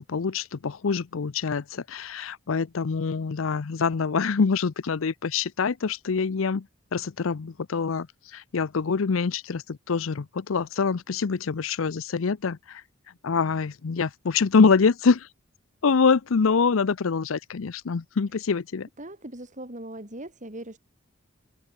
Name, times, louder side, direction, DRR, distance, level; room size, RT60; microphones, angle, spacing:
voice 1, 0.0-6.7 6.9-12.8 13.2-15.3 15.8-18.9, left 5 dB, 85° left, 0.6 m, -25 dB
voice 2, 19.0-20.8, right 1 dB, 40° right, 5.3 m, -39 dB
head